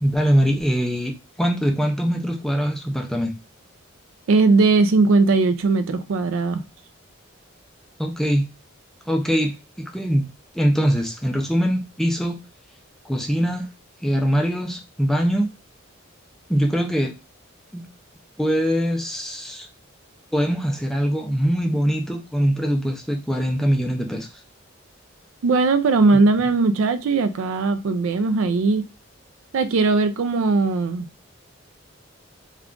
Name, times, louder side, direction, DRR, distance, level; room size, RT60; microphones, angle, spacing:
voice 1, 0.0-1.1 1.4-3.3 8.0-8.4 9.1-10.3 10.5-12.4 13.0-13.7 14.0-15.5 16.5-17.1 17.7-17.9 18.4-19.7 20.3-24.4, equal, ahead, 0.4 m, -22 dB
voice 2, 4.3-6.6 25.4-28.9 29.5-31.1, right 3 dB, 75° right, 0.4 m, -19 dB
2.3 x 2.3 x 3.6 m
head